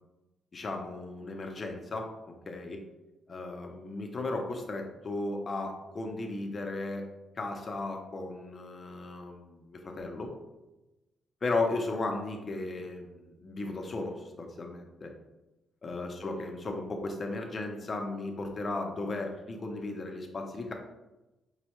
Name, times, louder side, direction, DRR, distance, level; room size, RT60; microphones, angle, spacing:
voice 1, 0.5-2.9 3.3-7.1 7.4-10.3 11.4-15.1 15.8-20.7, left 2 dB, 25° left, 3 dB, 0.5 m, -35 dB
5.3 x 2.1 x 2.9 m, 1.0 s
cardioid pair, 180°, 0 cm